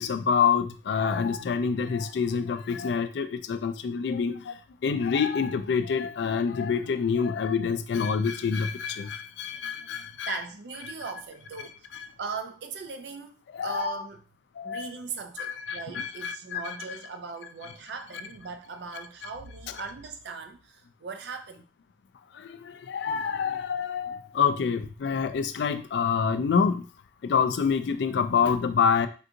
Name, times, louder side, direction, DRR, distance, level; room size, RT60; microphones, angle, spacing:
voice 1, 0.0-10.4 11.9-12.1 13.5-14.1 14.6-14.9 15.4-16.6 22.3-26.9 27.2-29.1, left 6 dB, 70° left, 0.3 m, -27 dB
voice 2, 9.9-13.3 13.6-14.2 14.6-21.7, right 4 dB, 65° right, 0.4 m, -39 dB
3.6 x 2.8 x 2.5 m
head